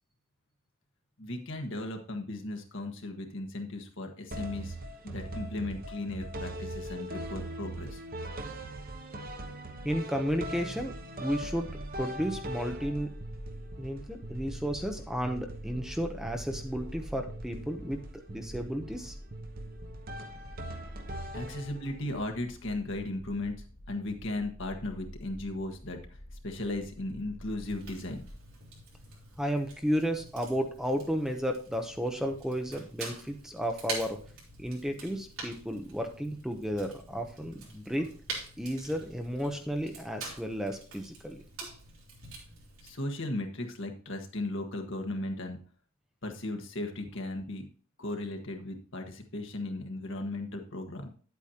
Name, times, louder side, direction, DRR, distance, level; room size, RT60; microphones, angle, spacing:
voice 1, 1.2-4.7 5.0-8.0 21.3-26.0 26.4-28.2 34.7-34.8 42.8-45.6 46.2-47.7 48.0-51.1, left 2 dB, 60° left, 4 dB, 1.5 m, -36 dB
sound 1, 4.3-22.1, right 1 dB, 45° right, 1.0 m, -41 dB
voice 2, 9.8-11.0 11.2-13.1 13.8-18.0 18.3-19.1 29.4-34.2 34.6-38.1 38.6-41.7, equal, ahead, 4 dB, 0.7 m, -33 dB
sound 2, 11.4-28.4, left 1 dB, 80° left, 2.6 m, -48 dB
Fire, 27.6-42.9, right 3 dB, 80° right, 3.4 m, -46 dB
10.0 x 8.4 x 2.9 m, 0.42 s
head